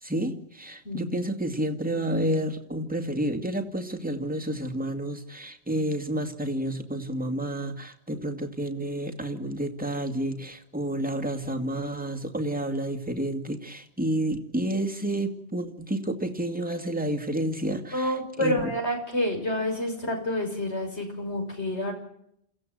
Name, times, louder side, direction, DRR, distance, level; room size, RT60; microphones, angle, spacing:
voice 1, 0.0-18.7, right 1 dB, 10° right, 2 dB, 2.2 m, -30 dB
voice 2, 17.9-21.9, left 1 dB, 85° left, 2 dB, 6.9 m, -28 dB
28.5 x 16.0 x 7.8 m, 0.72 s
omnidirectional pair, 1.1 m